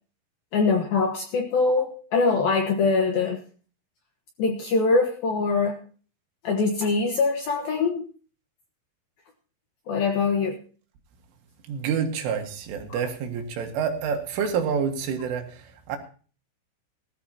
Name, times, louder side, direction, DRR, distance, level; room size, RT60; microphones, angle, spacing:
voice 1, 0.5-3.4 4.4-5.8 6.4-8.1 9.9-10.6, left 4 dB, 70° left, 3 dB, 2.4 m, -23 dB
voice 2, 11.7-16.0, right 6 dB, 75° right, 5 dB, 4.2 m, -28 dB
19.5 x 14.0 x 2.9 m, 0.39 s
omnidirectional pair, 5.9 m